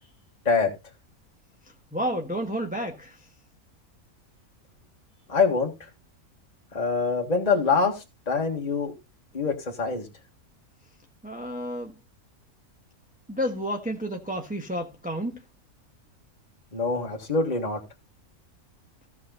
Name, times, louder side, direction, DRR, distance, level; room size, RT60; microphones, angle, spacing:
voice 1, 1.6-3.3 11.2-11.9 13.3-15.4, equal, 5° right, 1.2 m, -31 dB
voice 2, 5.3-5.7 6.7-8.9 9.3-10.1 16.7-17.8, left 4 dB, 30° left, 1.8 m, -24 dB
16.0 x 6.1 x 3.9 m
omnidirectional pair, 1.5 m